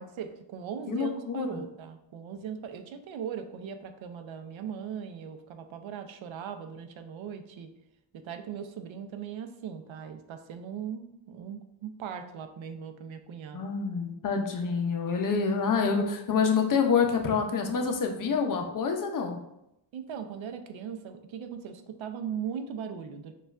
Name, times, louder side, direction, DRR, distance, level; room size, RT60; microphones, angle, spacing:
voice 1, 0.0-7.7 8.1-13.7 19.9-23.3, right 7 dB, 80° right, 7 dB, 0.5 m, -39 dB
voice 2, 0.9-1.6 13.5-19.4, left 5 dB, 45° left, 4 dB, 0.5 m, -27 dB
6.4 x 2.4 x 2.3 m, 0.84 s
wide cardioid pair, 180°, 46 cm